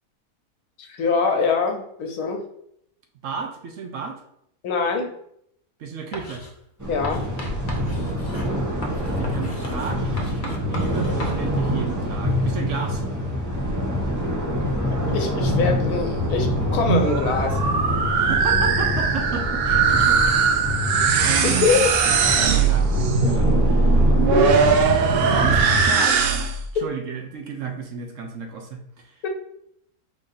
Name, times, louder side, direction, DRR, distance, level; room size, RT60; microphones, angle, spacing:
voice 1, 0.8-2.4 4.6-5.1 6.9-7.3 14.9-17.6 21.4-21.9 24.3-24.5 29.2-29.3, left 4 dB, 85° left, 4 dB, 1.3 m, -23 dB
voice 2, 3.2-4.2 5.8-6.4 9.1-13.0 18.1-20.4 21.2-21.6 22.3-23.9 24.4-24.5 25.0-26.5 26.8-29.2, right 5 dB, 65° right, 4 dB, 1.0 m, -32 dB
Writing, 6.1-6.5 7.0-11.4, left 1 dB, 45° left, 0.7 m, -36 dB
sound 1, 6.8-25.9, left 1 dB, 15° right, 0.7 m, -25 dB
sound 2, 16.7-26.7, right 5 dB, 80° right, 0.5 m, -20 dB
5.1 x 2.7 x 3.8 m, 0.71 s
omnidirectional pair, 1.6 m